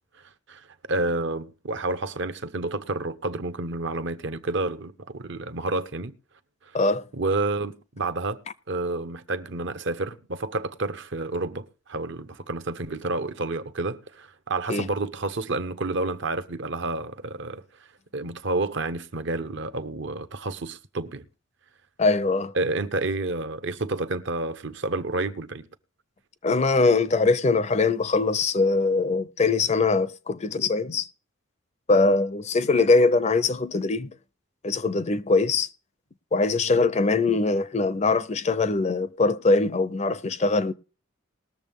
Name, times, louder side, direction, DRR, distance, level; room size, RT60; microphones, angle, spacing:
voice 1, 0.5-6.1 7.1-8.4 8.7-17.6 18.1-21.3 22.5-25.7, right 2 dB, 60° right, 0.8 m, -29 dB
voice 2, 22.0-22.5 26.4-31.1 31.9-34.1 34.6-35.7 36.3-40.7, left 3 dB, 30° left, 0.5 m, -22 dB
20.0 x 6.9 x 3.5 m
head